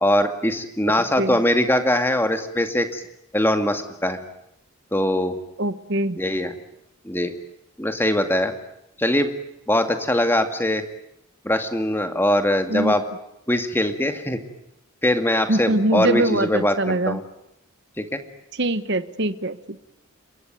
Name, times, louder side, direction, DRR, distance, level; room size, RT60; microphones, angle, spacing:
voice 1, 0.0-3.0 3.3-4.2 4.9-5.4 6.2-6.5 7.0-7.3 7.8-8.5 9.0-9.3 9.7-10.8 11.4-13.0 13.5-14.4 15.0-17.2 18.0-18.2, left 1 dB, 10° left, 6 dB, 2.1 m, -21 dB
voice 2, 0.9-1.4 5.6-6.2 12.7-13.0 15.5-17.2 18.5-19.8, right 1 dB, 50° right, 13 dB, 1.2 m, -23 dB
27.5 x 23.0 x 9.4 m, 0.81 s
head